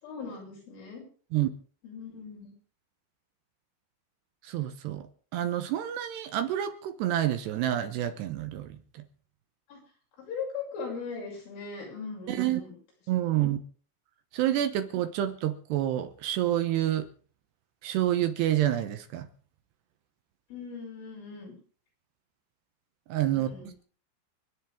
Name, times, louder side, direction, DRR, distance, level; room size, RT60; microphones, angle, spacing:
voice 1, 0.0-1.0 1.8-2.5 9.7-9.8 10.2-12.8 13.2-13.4 20.5-21.5 23.3-23.7, left 5 dB, 85° left, -3 dB, 9.1 m, -39 dB
voice 2, 4.4-5.1 5.3-8.8 12.3-12.6 13.1-13.6 14.3-17.1 17.8-19.3 23.1-23.5, right 12 dB, 75° right, 9 dB, 2.8 m, -28 dB
30.0 x 10.0 x 3.6 m, 0.42 s
omnidirectional pair, 5.5 m